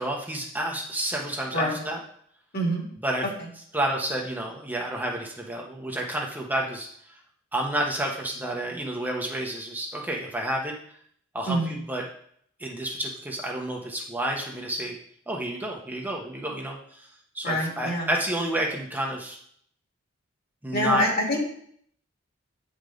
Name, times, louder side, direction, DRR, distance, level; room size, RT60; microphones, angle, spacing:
voice 1, 0.0-2.0 3.0-3.3 3.7-6.9 7.5-10.7 11.3-12.0 12.6-15.0 15.3-17.1 17.3-19.4 20.6-21.0, right 1 dB, 10° right, -1 dB, 0.9 m, -30 dB
voice 2, 17.4-18.1 20.7-21.4, equal, 50° left, -1 dB, 2.1 m, -25 dB
8.8 x 5.1 x 3.9 m, 0.64 s
head